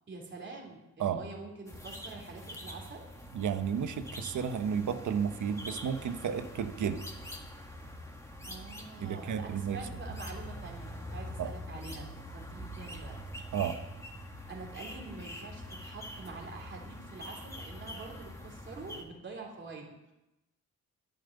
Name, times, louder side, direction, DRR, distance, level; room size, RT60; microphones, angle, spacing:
voice 1, 0.1-3.1 8.4-13.2 14.5-20.1, right 3 dB, 40° right, 0 dB, 3.2 m, -46 dB
sound 1, 1.7-19.0, equal, 10° left, 1.8 m, -44 dB
voice 2, 3.3-7.0 9.0-9.8 11.4-11.5 13.5-13.8, right 7 dB, 75° right, 8 dB, 1.2 m, -32 dB
10.5 x 9.3 x 9.3 m, 0.96 s
wide cardioid pair, 150°, 30 cm